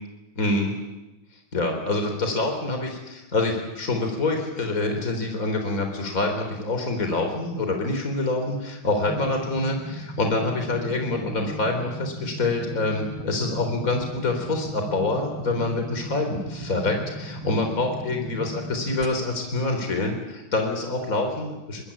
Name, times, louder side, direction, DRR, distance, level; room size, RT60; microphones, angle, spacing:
voice 1, 0.4-0.7 1.5-21.9, left 2 dB, 40° left, 4 dB, 4.3 m, -26 dB
sound 1, 9.1-19.1, right 1 dB, 75° right, 2.8 m, -37 dB
24.0 x 21.0 x 8.8 m, 1.0 s
omnidirectional pair, 2.3 m